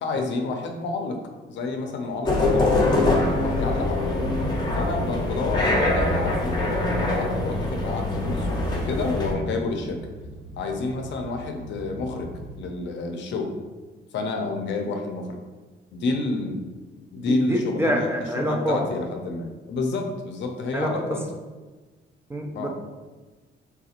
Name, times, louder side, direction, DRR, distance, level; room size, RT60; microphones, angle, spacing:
voice 1, 0.0-1.2 1.5-2.9 3.4-4.3 4.7-10.1 10.6-13.5 14.1-15.4 15.9-16.6 17.1-21.2 22.5-22.7, left 3 dB, 65° left, 3 dB, 0.5 m, -29 dB
sound 1, 1.7-12.6, right 2 dB, 45° right, 0.9 m, -41 dB
sound 2, 2.2-9.3, left 2 dB, 20° left, 0.8 m, -23 dB
voice 2, 17.2-18.8 20.7-20.9 22.3-22.7, equal, 15° right, 1 dB, 0.4 m, -26 dB
3.4 x 2.8 x 2.4 m, 1.3 s
cardioid pair, 90°, 20 cm